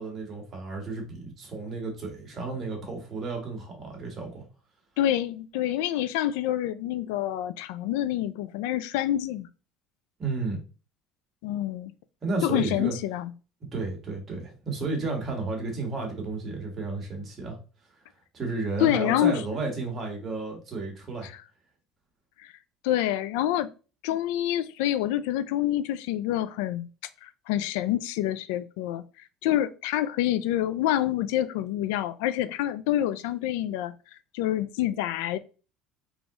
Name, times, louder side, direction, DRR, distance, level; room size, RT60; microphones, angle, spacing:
voice 1, 0.0-4.4 10.2-10.6 12.2-13.0 13.7-17.6 18.3-21.3, right 3 dB, 30° right, 1.6 m, -32 dB
voice 2, 5.0-9.5 11.4-11.9 12.4-13.3 18.8-19.3 21.2-21.3 22.4-22.5 22.8-23.7 24.0-26.9 27.2-29.0 29.4-33.9 34.3-35.4, left 12 dB, 90° left, 0.3 m, -27 dB
3.9 x 2.9 x 3.7 m
cardioid pair, 140°, 0 cm